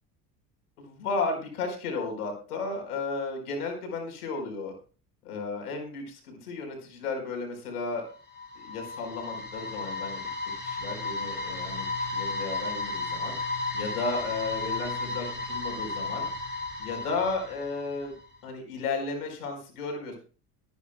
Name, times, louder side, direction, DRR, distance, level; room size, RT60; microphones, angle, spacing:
voice 1, 0.8-4.7 5.2-8.0 8.5-10.2 10.6-11.8 12.1-13.3 13.7-16.3 16.8-18.1 18.4-20.2, left 4 dB, 70° left, 3 dB, 4.6 m, -33 dB
sound 1, 8.1-18.1, left 3 dB, 20° left, 3.7 m, -34 dB
22.5 x 9.6 x 2.2 m, 0.37 s
figure-of-eight pair, 65°, 47 cm